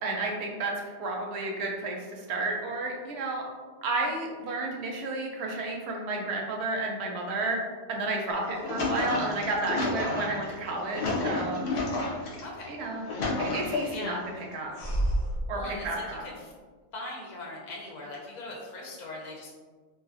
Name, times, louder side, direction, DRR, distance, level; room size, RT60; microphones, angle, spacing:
voice 1, 0.0-3.4 3.8-7.6 7.9-11.6 12.7-13.0 13.4-14.7 15.5-16.2, right 2 dB, 80° right, 0 dB, 0.8 m, -31 dB
sound 1, 8.3-12.4 12.9-14.1 14.8-15.5, left 2 dB, 85° left, 0.9 m, -30 dB
voice 2, 12.4-12.8 13.9-14.3 15.5-16.5 16.9-19.5, left 2 dB, 50° left, -2 dB, 0.6 m, -40 dB
2.5 x 2.4 x 2.5 m, 1.5 s
omnidirectional pair, 1.1 m